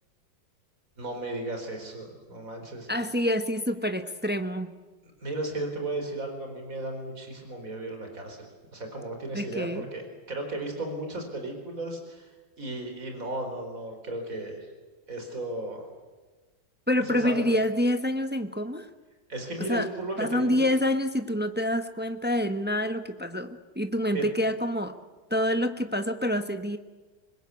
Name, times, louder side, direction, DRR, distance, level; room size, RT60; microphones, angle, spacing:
voice 1, 1.0-2.9 5.2-10.0 10.3-12.3 12.6-14.7 15.1-15.8 17.0-17.4 19.3-20.6 24.1-24.2, right 2 dB, 45° right, 4 dB, 4.9 m, -35 dB
voice 2, 2.9-4.7 9.3-9.8 16.9-18.9 19.6-19.9 20.2-25.0 25.3-26.8, left 1 dB, 10° right, 8 dB, 0.7 m, -27 dB
25.0 x 21.0 x 8.4 m, 1.3 s
omnidirectional pair, 2.0 m